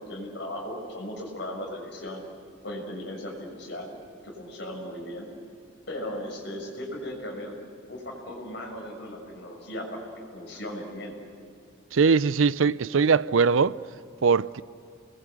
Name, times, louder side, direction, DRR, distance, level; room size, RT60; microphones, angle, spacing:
voice 1, 0.0-2.2 2.6-3.9 4.2-5.3 5.9-7.5 7.9-11.1, left 1 dB, 60° left, 6.4 m, -37 dB
voice 2, 11.9-13.8 14.2-14.6, right 5 dB, 85° right, 0.5 m, -21 dB
29.0 x 21.5 x 8.3 m
head